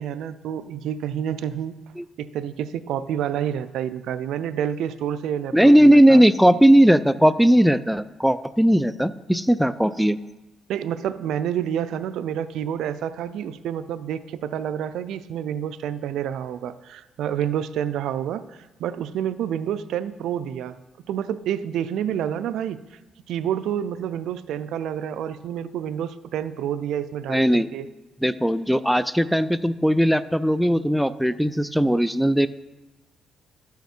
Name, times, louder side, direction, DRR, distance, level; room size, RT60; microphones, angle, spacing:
voice 1, 0.0-1.8 2.2-6.2 10.7-18.5 18.8-20.8 21.1-22.8 23.3-27.9, right 9 dB, 80° right, 14 dB, 0.4 m, -28 dB
voice 2, 5.5-10.2 27.3-27.7 28.2-32.5, equal, ahead, 13 dB, 0.3 m, -18 dB
12.5 x 5.8 x 4.4 m, 1.1 s
cardioid pair, 90°, 0 cm